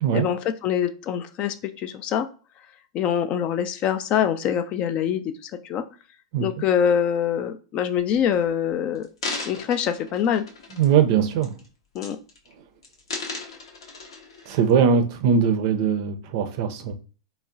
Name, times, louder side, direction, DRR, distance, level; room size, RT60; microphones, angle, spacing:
voice 1, 0.1-2.3 2.9-5.8 6.4-9.1 9.5-10.4 11.9-12.2 14.7-14.8, left 9 dB, 40° left, 0.3 m, -24 dB
sound 1, 8.0-8.3 8.9-11.1 11.4-11.7 12.0-12.5 12.8-14.5 15.1-15.2, left 3 dB, 75° left, 0.7 m, -36 dB
voice 2, 10.7-11.6 14.5-16.9, right 7 dB, 50° right, 0.4 m, -21 dB
3.5 x 2.0 x 2.5 m
hypercardioid pair, 105°, 3 cm